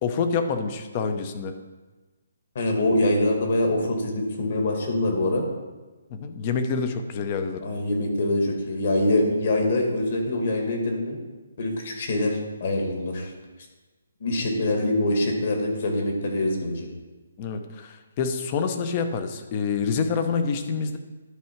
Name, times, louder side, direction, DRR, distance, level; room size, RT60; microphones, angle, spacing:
voice 1, 0.0-1.5 6.1-7.7 17.4-21.0, left 5 dB, 25° left, 8 dB, 0.7 m, -27 dB
voice 2, 2.6-5.5 7.6-11.2 11.6-13.3 14.2-16.9, left 1 dB, 45° left, 1 dB, 2.0 m, -24 dB
11.5 x 4.7 x 4.6 m, 1.2 s
hypercardioid pair, 170°, 0 cm